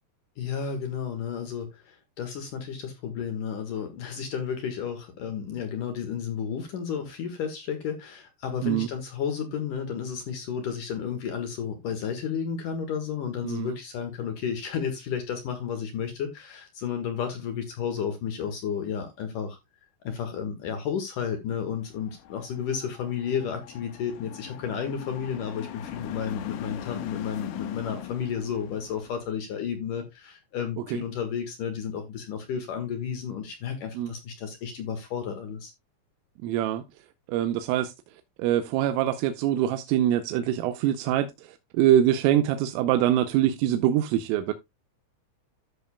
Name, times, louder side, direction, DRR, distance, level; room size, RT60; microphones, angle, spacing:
voice 1, 0.4-19.6 20.0-35.7, left 7 dB, 60° left, 2.2 m, -32 dB
voice 2, 13.4-13.8 30.9-31.0 34.0-34.1 36.4-36.8 37.3-37.9 38.4-44.5, right 11 dB, 85° right, 3.3 m, -24 dB
sound 1, 21.9-29.3, left 11 dB, 85° left, 3.9 m, -41 dB
13.5 x 6.6 x 2.2 m
omnidirectional pair, 5.9 m